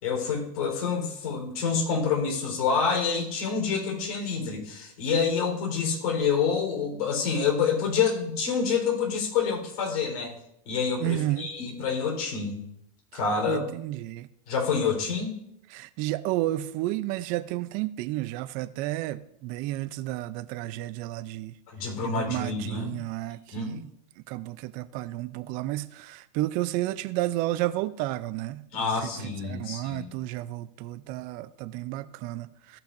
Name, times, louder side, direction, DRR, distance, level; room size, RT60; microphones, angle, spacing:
voice 1, 0.0-10.3 10.7-12.6 13.1-13.7 14.5-15.4 21.7-22.9 23.5-23.8 28.7-30.1, left 6 dB, 70° left, 4.0 m, -27 dB
voice 2, 11.0-11.5 13.5-14.3 15.7-21.5 22.0-23.8 24.3-32.8, right 16 dB, 45° right, 0.5 m, -32 dB
16.5 x 5.7 x 2.6 m
supercardioid pair, 125°, 20 cm